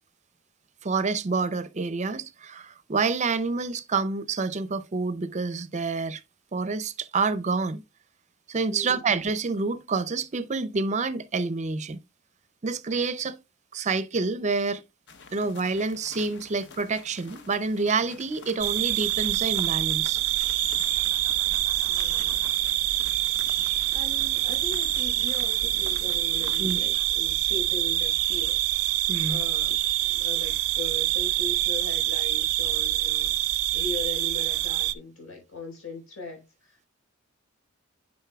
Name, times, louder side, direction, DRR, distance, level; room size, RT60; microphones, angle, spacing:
voice 1, 0.8-6.2 6.5-7.8 8.5-12.0 12.6-13.4 13.7-14.8 15.3-20.2 26.6-26.8 29.1-29.4, right 4 dB, 35° right, 0.5 m, -28 dB
voice 2, 8.7-9.0 21.9-22.5 23.9-28.6 29.3-29.8 30.1-36.9, left 3 dB, 85° left, 4.3 m, -39 dB
sound 1, 15.1-26.9, left 5 dB, 55° left, 0.8 m, -46 dB
sound 2, 18.6-34.9, right 15 dB, 85° right, 0.5 m, -26 dB
10.0 x 5.2 x 2.3 m
head